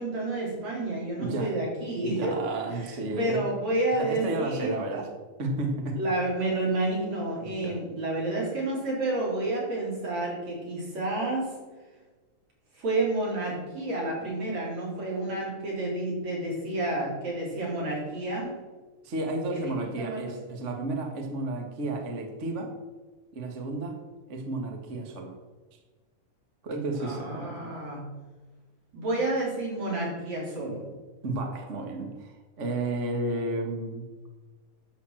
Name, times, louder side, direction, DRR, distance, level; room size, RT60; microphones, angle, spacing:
voice 1, 0.0-2.4 2.9-4.8 6.0-11.5 12.8-18.6 19.5-20.4 27.0-28.2 28.9-30.9, right 2 dB, 60° right, -4 dB, 5.4 m, -30 dB
voice 2, 1.2-1.5 2.1-3.4 4.0-5.1 5.4-6.0 7.4-7.8 19.0-22.7 23.3-24.0 24.3-25.3 25.7-25.8 26.6-27.7 31.2-34.0, right 2 dB, 35° right, 2 dB, 1.2 m, -32 dB
10.5 x 7.1 x 7.7 m, 1.3 s
omnidirectional pair, 3.5 m